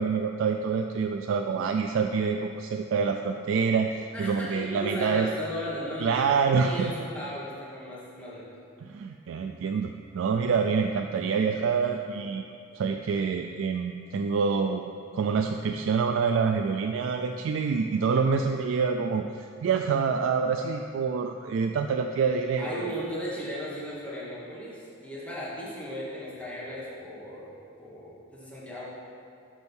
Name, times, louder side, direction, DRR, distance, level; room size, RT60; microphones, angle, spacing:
voice 1, 0.0-5.3 6.0-6.9 8.8-12.4 12.7-14.8 15.1-22.9, right 5 dB, 75° right, 4 dB, 0.3 m, -26 dB
voice 2, 4.1-8.5 10.7-10.9 22.6-27.5 27.8-28.8, equal, 5° left, -8 dB, 1.4 m, -36 dB
6.2 x 5.3 x 5.4 m, 2.5 s
head